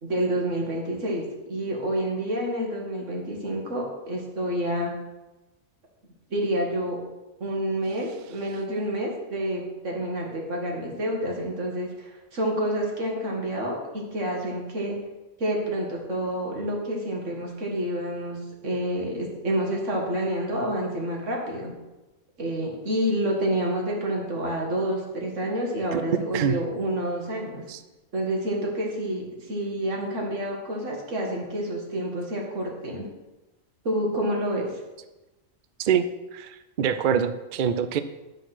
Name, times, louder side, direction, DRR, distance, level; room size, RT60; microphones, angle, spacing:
voice 1, 0.0-4.9 6.3-7.0 7.4-15.0 15.4-21.7 22.4-27.6 28.1-33.1 33.8-34.7, right 1 dB, 75° right, -1 dB, 2.2 m, -28 dB
voice 2, 36.3-38.0, right 8 dB, 60° right, 10 dB, 0.5 m, -25 dB
10.0 x 5.2 x 5.9 m, 1.1 s
omnidirectional pair, 1.3 m